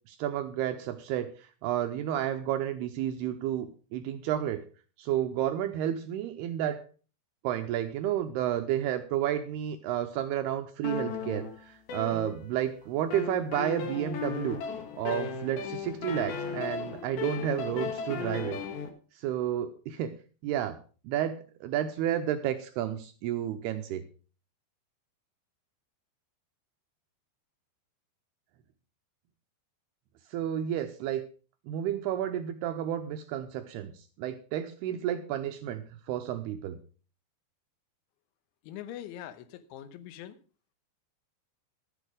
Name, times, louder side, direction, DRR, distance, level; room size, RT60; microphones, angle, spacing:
voice 1, 0.1-4.6 5.0-6.8 7.4-14.6 15.0-18.6 19.2-20.1 20.4-20.8 21.0-24.0 30.3-31.2 31.7-33.9 34.2-36.8, right 11 dB, 85° right, 7 dB, 2.3 m, -31 dB
sound 1, 10.8-12.7 13.1-18.9, left 5 dB, 60° left, 3.1 m, -36 dB
voice 2, 38.6-40.4, left 11 dB, 80° left, 12 dB, 3.2 m, -43 dB
12.5 x 8.2 x 5.0 m, 0.38 s
omnidirectional pair, 5.4 m